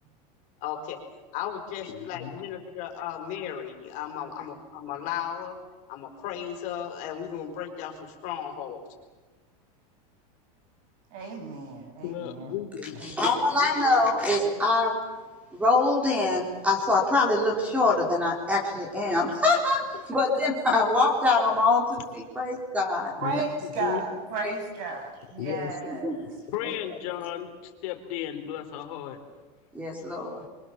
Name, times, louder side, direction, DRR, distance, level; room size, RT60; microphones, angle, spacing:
voice 1, 0.6-1.0 1.3-5.6 5.9-8.8, left 9 dB, 40° left, 3 dB, 4.7 m, -35 dB
voice 2, 1.8-2.4 4.4-4.5 12.0-13.0 19.9-20.0 23.2-24.0 25.4-29.2, left 11 dB, 55° left, 4 dB, 3.6 m, -35 dB
voice 3, 11.1-12.5 13.0-13.4 23.2-26.1, right 4 dB, 40° right, 4 dB, 7.5 m, -34 dB
voice 4, 13.2-15.0 15.5-23.1 24.4-24.5 26.0-26.2 29.7-30.4, left 2 dB, 5° right, 1 dB, 3.8 m, -24 dB
26.5 x 24.5 x 7.3 m, 1.3 s
supercardioid pair, 165°, 20 cm